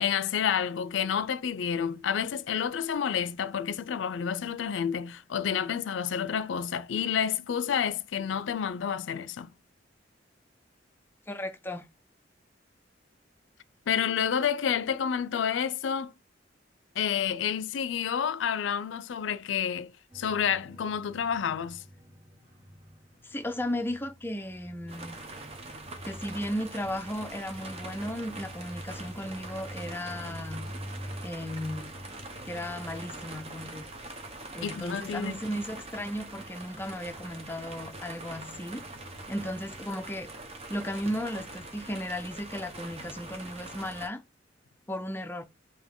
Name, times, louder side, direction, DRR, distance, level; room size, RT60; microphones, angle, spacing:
voice 1, 0.0-9.5 13.9-16.1 17.0-21.8 34.6-35.3, left 8 dB, 85° left, 0.4 m, -29 dB
voice 2, 11.3-11.9 23.2-25.2 26.0-30.7 31.2-32.0 32.5-33.9 34.5-38.9 39.3-40.3 40.7-44.2 44.9-45.4, equal, 10° left, 0.4 m, -35 dB
sound 1, 20.1-39.8, equal, 50° right, 1.6 m, -48 dB
sound 2, 24.9-44.1, right 2 dB, 35° right, 0.9 m, -44 dB
5.2 x 2.8 x 3.6 m
head